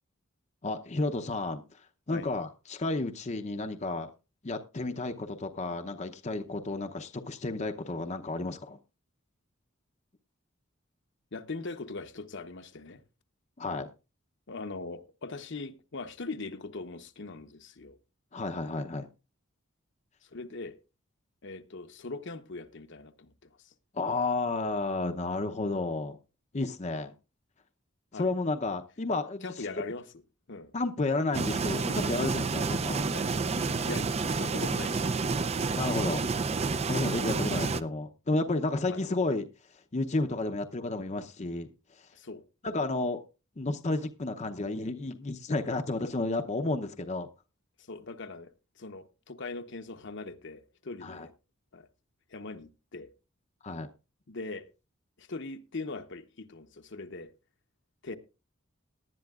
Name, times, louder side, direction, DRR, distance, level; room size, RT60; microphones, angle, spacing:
voice 1, 0.6-1.8 2.1-4.1 4.4-8.8 13.6-13.9 18.3-19.1 23.9-26.2 26.5-27.1 28.1-29.7 30.7-33.1 35.8-36.3 36.9-39.5 39.9-42.1 42.6-43.2 43.6-47.3 51.0-51.3 53.6-53.9, left 2 dB, 35° left, 0.7 m, -32 dB
voice 2, 11.3-13.0 14.5-18.0 20.3-20.8 21.4-23.5 28.1-28.3 29.4-30.0 30.5-30.7 31.8-32.0 33.1-33.3 33.8-35.3 37.4-37.6 38.9-39.0 42.1-42.4 47.9-48.5 48.8-51.3 51.7-51.9 52.3-53.1 54.3-54.7 55.2-57.3 58.0-58.2, left 3 dB, 60° left, 1.0 m, -41 dB
sound 1, 31.3-37.8, right 4 dB, 30° right, 0.5 m, -29 dB
18.5 x 11.0 x 2.4 m
head